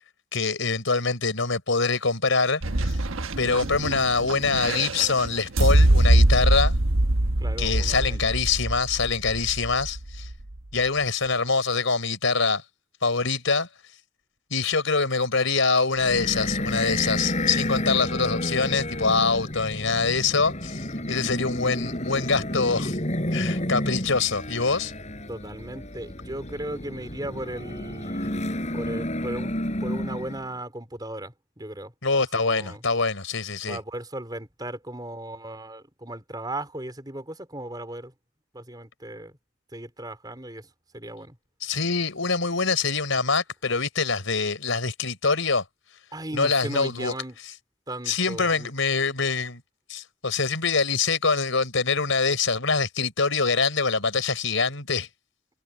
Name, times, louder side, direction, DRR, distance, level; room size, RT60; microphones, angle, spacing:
voice 1, 0.3-2.9 3.4-6.7 7.6-10.3 10.7-12.6 13.0-13.7 14.5-23.0 23.3-24.9 32.0-33.8 41.6-45.6 46.3-47.1 48.1-49.6 49.9-55.1, left 4 dB, 70° left, 4.1 m, -24 dB
sound 1, 2.6-10.6, right 1 dB, 75° right, 1.3 m, -23 dB
voice 2, 3.5-3.8 7.4-8.2 25.3-29.5 29.8-31.9 32.2-32.8 33.7-38.1 38.5-39.3 39.7-40.7 40.9-41.4 46.1-47.4 47.9-48.7, right 1 dB, 20° right, 4.2 m, -36 dB
sound 2, 16.0-30.5, left 1 dB, 35° left, 4.9 m, -30 dB
head